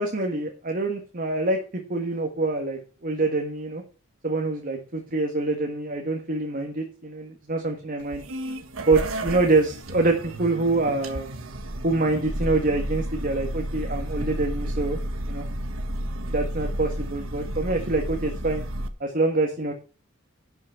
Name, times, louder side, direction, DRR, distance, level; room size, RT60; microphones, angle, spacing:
voice 1, 0.0-3.8 4.2-8.2 8.9-11.3 11.8-15.0 15.3-15.4 16.3-18.6 19.0-19.7, right 2 dB, 45° right, 3 dB, 1.7 m, -25 dB
sound 1, 8.0-18.9, right 1 dB, 85° right, 1.4 m, -32 dB
11.5 x 6.4 x 5.8 m, 0.37 s
head